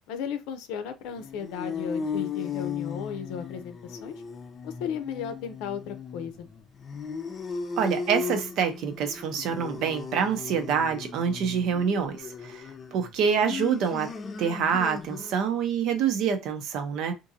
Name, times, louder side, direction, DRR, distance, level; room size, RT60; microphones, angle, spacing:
voice 1, 0.1-4.2 4.6-6.5, left 7 dB, 75° left, 0.6 m, -35 dB
sound 1, 1.1-15.6, left 5 dB, 25° left, 0.5 m, -36 dB
voice 2, 7.8-12.6 12.9-14.1 14.4-17.1, right 7 dB, 55° right, 0.7 m, -26 dB
3.7 x 2.6 x 2.7 m
cardioid pair, 145°, 0 cm